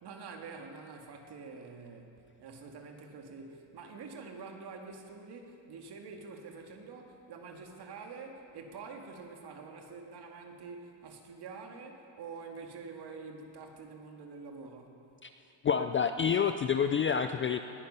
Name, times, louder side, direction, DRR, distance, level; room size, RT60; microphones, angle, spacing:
voice 1, 0.0-15.0, right 4 dB, 55° right, 3 dB, 2.1 m, -46 dB
voice 2, 15.6-17.6, left 7 dB, 30° left, 9 dB, 0.3 m, -28 dB
20.0 x 9.8 x 5.6 m, 2.8 s
cardioid pair, 100°, 49 cm